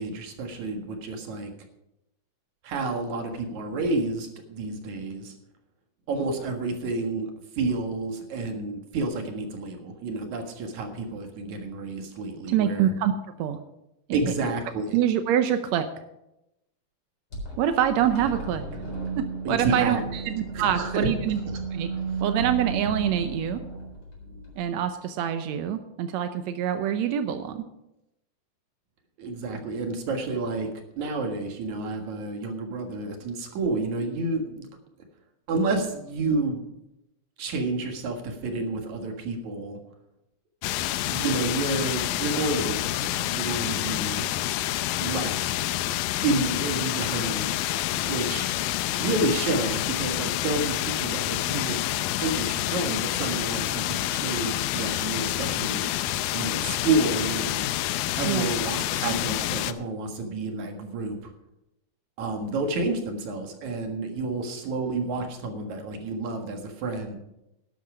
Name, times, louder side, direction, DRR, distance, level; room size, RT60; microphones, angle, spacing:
voice 1, 0.0-1.5 2.6-5.3 6.1-7.3 7.6-12.9 14.1-15.0 19.4-20.0 20.5-21.1 21.9-22.0 29.2-30.7 31.0-34.7 35.5-36.6 37.4-39.8 41.0-44.3 45.0-45.6 46.2-47.6 48.0-48.5 49.0-51.8 52.2-55.9 56.3-57.7 58.2-61.3 62.2-67.2, right 3 dB, 60° right, 4 dB, 2.8 m, -30 dB
voice 2, 12.5-13.1 13.4-13.6 14.2-14.3 14.9-15.9 17.6-18.6 19.2-21.4 21.7-21.9 22.2-23.6 24.6-27.6 58.2-58.5, right 9 dB, 85° right, 9 dB, 1.5 m, -25 dB
sound 1, 17.3-24.6, right 4 dB, 30° left, 4.5 m, -34 dB
sound 2, 40.6-59.7, left 14 dB, 85° left, 2.4 m, -28 dB
12.0 x 11.5 x 4.9 m, 0.87 s
omnidirectional pair, 4.1 m